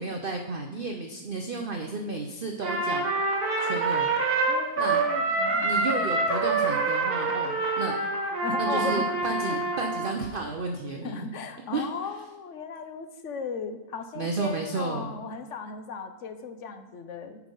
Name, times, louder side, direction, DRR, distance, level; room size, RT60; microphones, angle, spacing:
voice 1, 0.0-3.1 3.6-4.3 4.8-5.0 5.6-8.0 8.6-11.3 11.7-11.9 14.1-15.1, right 3 dB, 50° right, 3 dB, 0.7 m, -32 dB
Trumpet, 2.6-10.2, right 3 dB, 90° right, 1.9 m, -26 dB
voice 2, 4.5-5.7 8.4-9.2 9.5-9.6 11.0-17.5, left 4 dB, 60° left, 8 dB, 0.9 m, -36 dB
9.2 x 5.4 x 5.4 m, 1.1 s
omnidirectional pair, 1.6 m